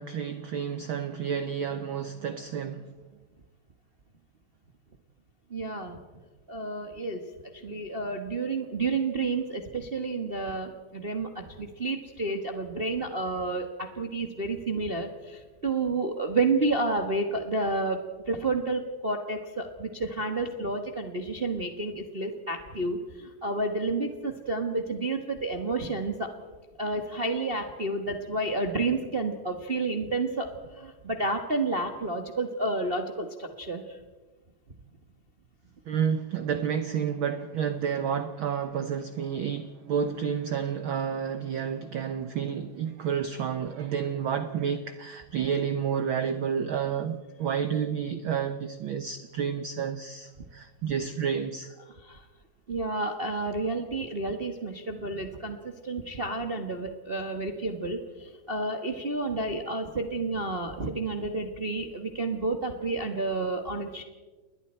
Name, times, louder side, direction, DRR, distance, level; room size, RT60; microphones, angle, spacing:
voice 1, 0.0-2.9 35.9-51.7, right 7 dB, 90° right, 1.1 m, -30 dB
voice 2, 5.5-6.0 6.5-7.2 7.6-18.0 18.3-26.3 26.8-30.5 30.7-34.0 52.0-52.2 52.7-64.0, right 2 dB, 45° right, 0.7 m, -30 dB
29.5 x 21.0 x 4.4 m
omnidirectional pair, 3.5 m